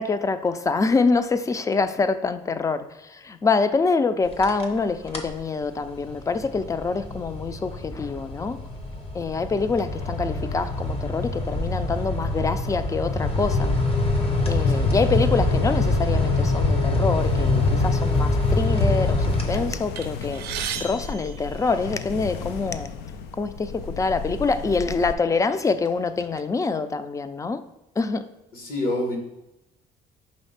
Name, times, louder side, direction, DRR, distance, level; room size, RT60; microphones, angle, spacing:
voice 1, 0.0-8.6 9.1-13.7 14.5-20.4 20.8-22.9 23.3-27.6 28.0-28.3, left 4 dB, 20° left, 12 dB, 0.4 m, -25 dB
sound 1, 4.3-4.8 5.1-5.4 5.9-20.2, left 2 dB, 35° left, 0.9 m, -24 dB
sound 2, 17.2-25.1, left 6 dB, 90° left, 0.4 m, -36 dB
sound 3, 19.9-22.3 23.1-23.2 23.6-23.7 24.6-24.8 25.2-26.4, right 8 dB, 70° right, 0.5 m, -36 dB
voice 2, 28.5-29.2, left 1 dB, 60° left, 2 dB, 1.5 m, -26 dB
5.2 x 3.2 x 5.6 m, 0.90 s
cardioid pair, 110°, 17 cm